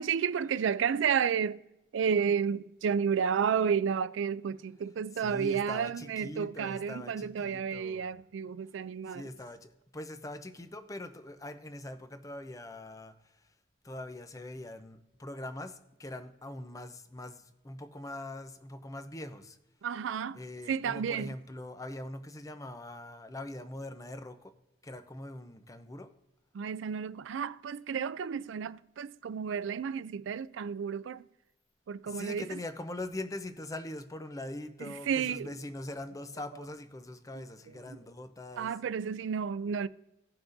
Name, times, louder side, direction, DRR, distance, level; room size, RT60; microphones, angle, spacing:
voice 1, 0.0-1.6 1.9-9.3 19.8-20.4 20.7-21.3 26.5-31.2 31.9-32.6 34.8-35.5 37.9-38.0 38.6-39.9, right 7 dB, 75° right, 0.3 m, -31 dB
voice 2, 5.1-8.1 9.0-13.5 13.8-19.6 20.3-24.5 24.8-26.1 32.1-38.7, left 1 dB, 15° left, 0.5 m, -42 dB
16.5 x 5.9 x 2.6 m
head